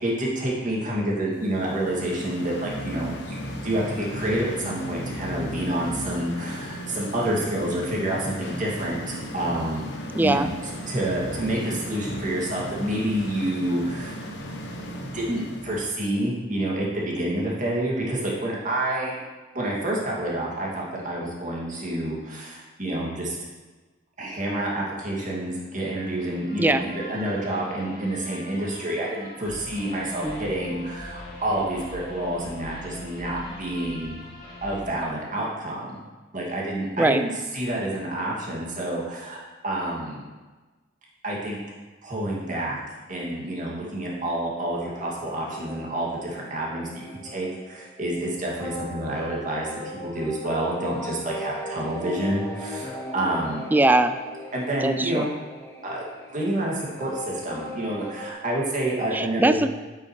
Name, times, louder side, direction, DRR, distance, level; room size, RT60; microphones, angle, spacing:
voice 1, 0.0-3.4 3.6-9.9 10.2-10.5 10.9-14.1 15.1-19.2 19.5-23.4 24.2-34.2 34.6-36.0 36.3-40.2 41.2-41.6 42.0-42.8 43.1-49.7 50.0-53.6 54.5-55.3 55.8-56.0 56.3-59.6, right 1 dB, 40° right, -4 dB, 2.3 m, -28 dB
sound 1, 1.4-15.9, equal, 65° left, 1.1 m, -36 dB
voice 2, 10.2-10.5 26.6-26.8 30.2-30.5 37.0-37.2 53.7-54.2 54.8-55.3 59.1-59.7, right 2 dB, 10° right, 10 dB, 0.3 m, -21 dB
sound 2, 26.0-34.8, left 1 dB, 45° left, 2.6 m, -42 dB
sound 3, 44.8-58.3, left 1 dB, 15° left, 1.1 m, -38 dB
9.9 x 8.4 x 3.2 m, 1.2 s
head